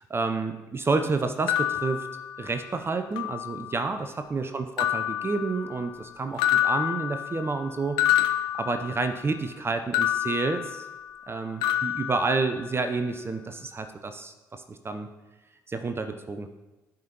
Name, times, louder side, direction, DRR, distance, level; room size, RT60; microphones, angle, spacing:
voice 1, 0.0-2.1 2.4-8.0 8.5-10.9 11.3-15.1 15.7-16.5, right 3 dB, 25° right, 7 dB, 0.7 m, -29 dB
sound 1, 1.5-2.8 3.2-3.9 4.8-6.0 6.4-9.3 9.9-11.3 11.6-12.9, left 12 dB, 65° left, 0.6 m, -28 dB
15.0 x 5.1 x 2.9 m, 1.1 s
figure-of-eight pair, 50°, 9 cm